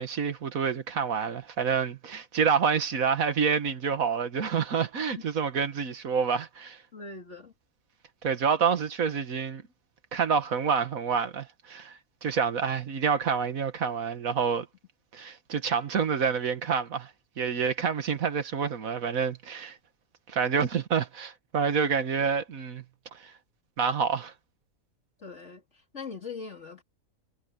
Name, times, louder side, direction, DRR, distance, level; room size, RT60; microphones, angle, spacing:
voice 1, 0.0-6.8 8.2-9.6 10.1-14.7 15.1-17.1 17.4-19.8 20.3-22.8 23.2-23.3 23.8-24.3, right 6 dB, 85° right, 1.9 m, -28 dB
voice 2, 6.9-7.5 25.2-25.6 25.9-26.8, left 4 dB, 55° left, 3.5 m, -40 dB
omnidirectional pair, 1.4 m